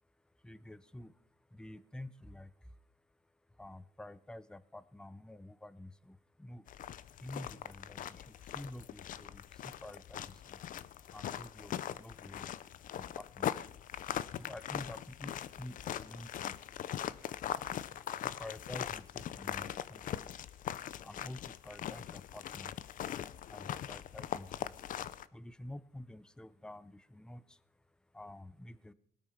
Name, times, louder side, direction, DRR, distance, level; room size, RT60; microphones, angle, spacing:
voice 1, 0.0-28.9, left 1 dB, 5° left, 16 dB, 0.6 m, -50 dB
sound 1, 6.7-25.2, left 10 dB, 55° left, 0.6 m, -41 dB
19.5 x 8.8 x 5.7 m, 0.65 s
cardioid pair, 110°, 17 cm